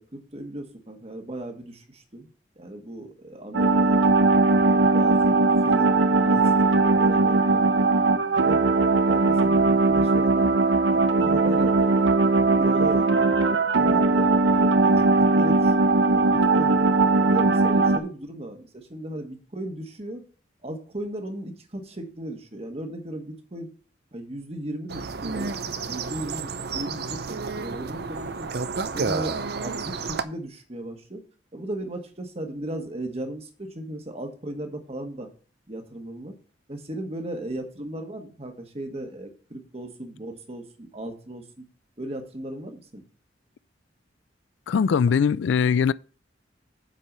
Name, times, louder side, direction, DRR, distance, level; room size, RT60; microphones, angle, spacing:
voice 1, 0.0-2.3 2.6-4.2 4.6-8.0 8.5-8.8 9.1-13.3 13.8-15.1 15.3-16.9 17.2-20.2 20.6-23.7 24.1-27.2 27.5-28.5 28.9-31.2 31.5-35.3 35.7-36.3 36.7-41.6 42.0-43.0, right 1 dB, 35° right, 1.4 m, -36 dB
sound 1, 3.5-18.0, right 3 dB, 85° right, 0.9 m, -19 dB
sound 2, 24.9-30.2, right 4 dB, 55° right, 0.6 m, -31 dB
voice 2, 44.7-45.9, left 6 dB, 80° left, 0.3 m, -21 dB
7.6 x 4.6 x 6.8 m
head